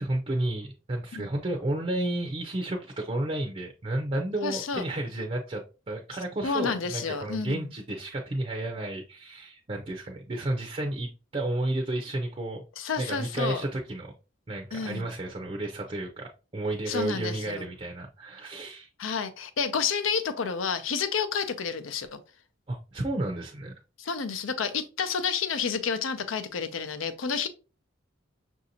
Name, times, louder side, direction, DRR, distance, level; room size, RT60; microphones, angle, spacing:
voice 1, 0.0-12.6 13.0-14.1 14.5-18.9 22.7-23.7, right 1 dB, 30° right, 0.5 m, -32 dB
voice 2, 4.4-4.8 6.4-7.7 12.8-13.6 14.7-15.1 16.9-17.7 19.0-22.2 24.0-27.5, left 6 dB, 85° left, 0.6 m, -30 dB
5.8 x 2.6 x 2.8 m
head